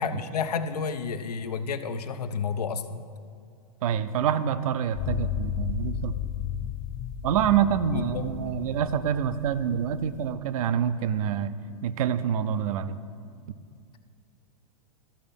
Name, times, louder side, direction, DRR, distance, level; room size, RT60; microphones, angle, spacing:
voice 1, 0.0-3.0 7.9-8.3, left 5 dB, 90° left, 10 dB, 0.6 m, -30 dB
voice 2, 3.8-6.1 6.6-6.7 7.2-11.5 11.8-13.0, right 8 dB, 65° right, 13 dB, 0.5 m, -26 dB
sound 1, 4.9-10.3, left 10 dB, 30° left, 0.4 m, -34 dB
13.0 x 4.4 x 5.3 m, 2.3 s
hypercardioid pair, 125°, 19 cm